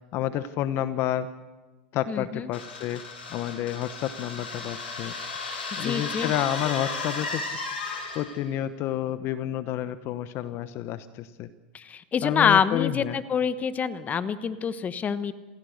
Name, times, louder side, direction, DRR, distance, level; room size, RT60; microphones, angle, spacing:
voice 1, 0.1-1.3 1.9-3.0 3.3-5.1 5.8-7.4 8.1-11.5 12.2-13.2, left 12 dB, 50° left, 13 dB, 1.0 m, -29 dB
voice 2, 2.1-2.5 5.8-6.3 11.7-15.3, left 7 dB, 25° left, 13 dB, 1.2 m, -26 dB
sound 1, 2.5-8.4, left 3 dB, 80° left, 7.7 m, -35 dB
27.5 x 16.0 x 6.6 m, 1.2 s
hypercardioid pair, 100°, 6 cm